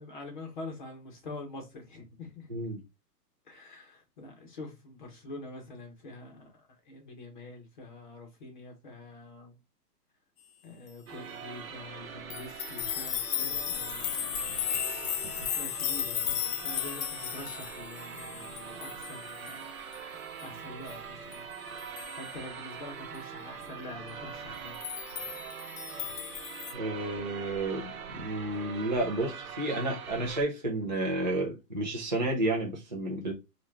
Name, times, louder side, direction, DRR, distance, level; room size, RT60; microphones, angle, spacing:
voice 1, 0.0-2.5 3.5-6.5 6.9-9.6 10.6-14.3 15.4-19.7 20.4-21.5 22.1-24.8 25.2-25.5, left 2 dB, 30° left, 0.9 m, -45 dB
voice 2, 2.5-2.8 26.7-33.3, right 2 dB, 30° right, 0.4 m, -31 dB
sound 1, 11.1-30.4, right 7 dB, 60° right, 0.7 m, -43 dB
sound 2, 12.3-19.6 19.9-20.0 20.4-20.5 20.9-21.0 21.3-21.4 21.8-22.3 24.7-26.7, left 10 dB, 75° left, 0.6 m, -35 dB
2.8 x 2.4 x 3.3 m
hypercardioid pair, 170°, 48 cm